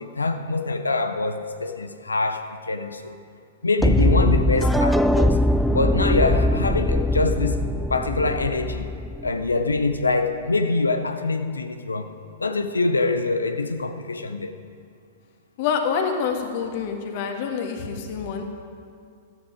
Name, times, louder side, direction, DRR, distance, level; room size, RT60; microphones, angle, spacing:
voice 1, 0.0-3.2 3.6-5.4 5.7-8.9 9.2-12.1 12.4-14.5, left 3 dB, 80° left, 8 dB, 0.7 m, -24 dB
sound 1, 3.8-9.8, left 1 dB, ahead, 0.4 m, -21 dB
voice 2, 15.6-18.4, left 6 dB, 45° left, 4 dB, 1.8 m, -26 dB
13.0 x 13.0 x 5.0 m, 2.2 s
figure-of-eight pair, 100°, 0 cm